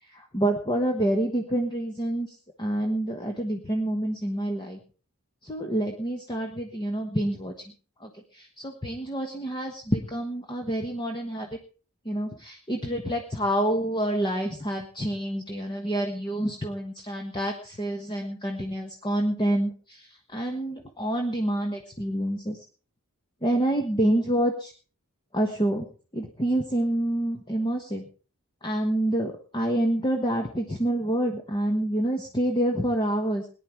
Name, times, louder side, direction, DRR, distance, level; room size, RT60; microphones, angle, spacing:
voice 1, 0.1-2.3 2.6-4.8 5.4-7.5 8.0-11.5 12.0-22.6 23.4-24.7 25.3-25.9 26.1-28.0 28.6-33.5, right 1 dB, 20° left, 3 dB, 1.3 m, -27 dB
19.0 x 10.5 x 4.6 m, 0.38 s
head